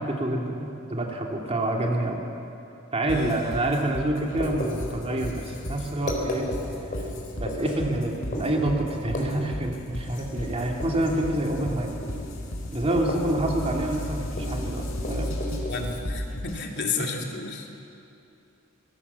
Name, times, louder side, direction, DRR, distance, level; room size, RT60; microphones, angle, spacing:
voice 1, 0.0-2.2 2.9-6.5 7.4-11.9 12.7-15.3, right 1 dB, 30° right, 0 dB, 2.7 m, -27 dB
voice 2, 3.0-3.4 15.7-17.7, left 4 dB, 55° left, 1 dB, 2.8 m, -32 dB
sound 1, 3.1-16.7, left 1 dB, 75° left, 4.4 m, -35 dB
Writing, 4.3-16.0, left 1 dB, 40° left, 4.1 m, -35 dB
24.0 x 22.0 x 7.2 m, 2.8 s
head